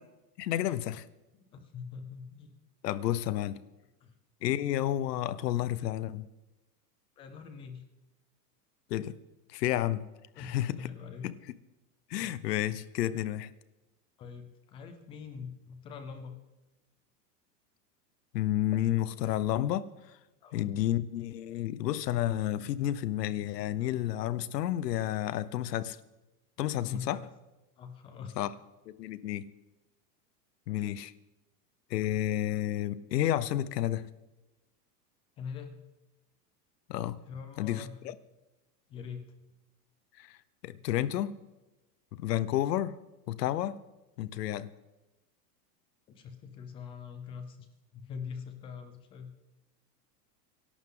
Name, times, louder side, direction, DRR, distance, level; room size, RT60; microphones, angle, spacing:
voice 1, 0.4-1.0 2.8-3.6 4.4-6.3 8.9-9.2 9.5-10.1 10.4-10.8 11.2-11.3 12.1-13.5 18.3-19.9 20.5-26.0 26.6-27.2 28.4-28.5 28.9-29.5 30.7-31.1 31.9-34.0 36.9-37.2 37.6-38.1 40.2-40.4 40.6-41.3 42.1-43.0 43.3-43.8 44.2-44.7, left 13 dB, 75° left, 1.0 m, -31 dB
voice 2, 1.5-2.5 4.0-4.1 7.2-7.8 10.3-11.3 12.2-12.3 14.2-16.4 20.4-20.7 26.8-27.2 27.8-28.4 35.4-35.7 37.3-38.0 38.9-39.2 46.1-47.7 47.9-49.3, left 6 dB, 10° left, 0.6 m, -43 dB
25.5 x 11.5 x 3.9 m
supercardioid pair, 175°, 48 cm